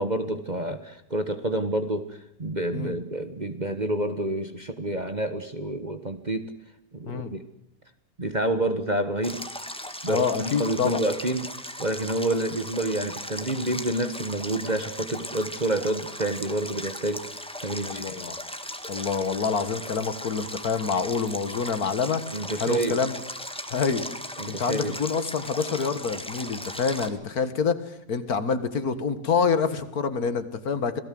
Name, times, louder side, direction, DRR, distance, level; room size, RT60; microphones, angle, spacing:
voice 1, 0.0-6.5 6.9-7.4 8.2-9.4 10.0-11.5 11.8-17.2 17.6-18.2 22.3-23.0 24.4-25.0, right 1 dB, 30° right, 9 dB, 1.4 m, -28 dB
Stream, 9.2-27.1, equal, 5° left, 1.6 m, -38 dB
voice 2, 10.1-11.0 17.8-18.4 18.9-22.2 22.6-23.1 23.7-24.1 24.5-31.0, left 5 dB, 60° left, 12 dB, 2.1 m, -27 dB
27.5 x 18.0 x 7.8 m, 0.79 s
omnidirectional pair, 1.8 m